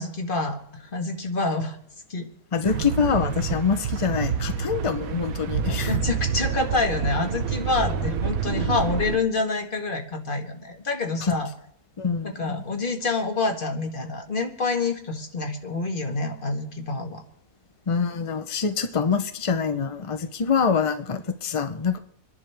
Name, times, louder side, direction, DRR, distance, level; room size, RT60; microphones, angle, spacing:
voice 1, 0.0-1.8 2.1-2.3 5.7-11.5 12.2-17.2, left 3 dB, 35° left, 4 dB, 1.6 m, -27 dB
voice 2, 2.5-5.9 11.2-11.3 12.0-12.6 17.9-22.0, left 6 dB, 50° left, 8 dB, 0.3 m, -25 dB
sound 1, 2.6-9.2, right 6 dB, 65° right, 1.2 m, -28 dB
27.5 x 11.0 x 3.4 m, 0.71 s
omnidirectional pair, 1.7 m